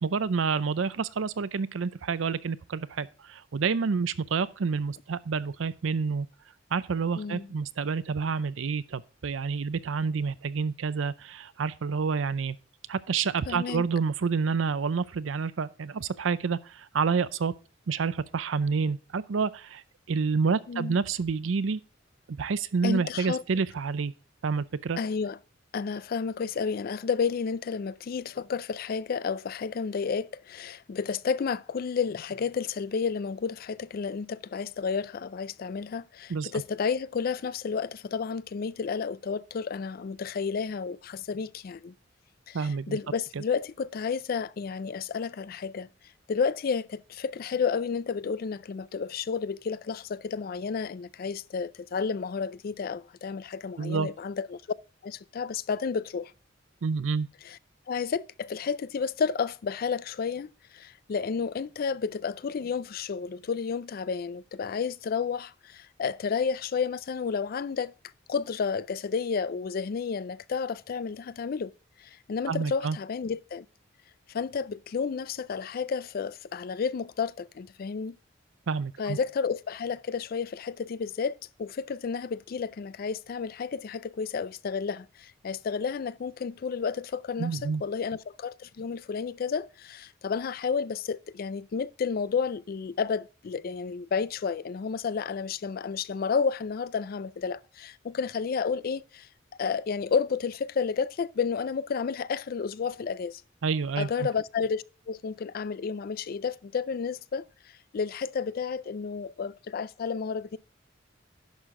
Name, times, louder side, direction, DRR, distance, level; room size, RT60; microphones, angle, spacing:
voice 1, 0.0-6.3 6.7-12.6 12.9-17.5 17.9-19.8 20.1-21.8 22.3-24.1 24.4-25.0 36.3-36.5 42.5-43.0 43.4-43.5 53.8-54.1 56.8-57.3 72.5-73.0 78.7-79.2 87.4-87.8 103.6-104.3, right 5 dB, 90° right, 0.5 m, -28 dB
voice 2, 7.2-7.5 13.5-13.8 20.7-21.0 22.8-23.4 25.0-25.4 25.7-41.9 42.5-45.9 46.3-54.6 55.0-56.3 57.5-57.6 57.9-67.9 68.3-71.7 72.0-73.7 74.3-78.2 79.0-99.3 99.6-103.4 104.0-107.4 107.9-110.6, left 5 dB, 50° left, 0.4 m, -31 dB
10.5 x 6.4 x 3.7 m
head